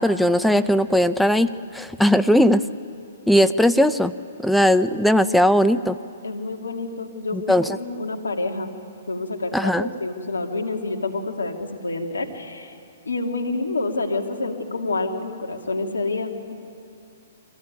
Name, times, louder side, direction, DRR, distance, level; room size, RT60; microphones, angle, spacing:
voice 1, 0.0-1.5 1.7-2.6 3.3-4.1 4.4-6.0 7.3-7.7 9.5-9.9, equal, ahead, 11 dB, 0.5 m, -18 dB
voice 2, 6.2-8.7 9.1-12.8 13.0-16.5, left 3 dB, 90° left, 3 dB, 2.3 m, -28 dB
23.5 x 15.5 x 9.2 m, 2.5 s
hypercardioid pair, 130°, 0 cm